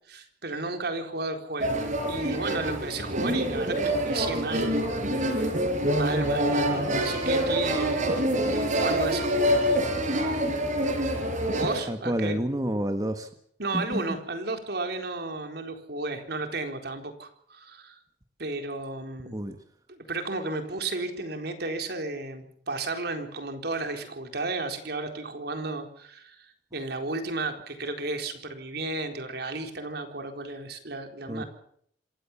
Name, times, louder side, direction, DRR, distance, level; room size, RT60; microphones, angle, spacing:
voice 1, 0.1-4.7 5.9-8.0 8.5-9.7 11.5-12.4 13.6-18.0 18.4-19.4 19.9-31.4, right 3 dB, 60° right, 6 dB, 4.1 m, -33 dB
sound 1, 1.6-11.8, right 1 dB, 45° right, 5.7 m, -26 dB
voice 2, 11.9-13.3 13.7-14.2 19.2-19.6 31.3-31.4, right 1 dB, 20° right, 7 dB, 1.5 m, -29 dB
27.5 x 16.0 x 7.3 m, 0.65 s
head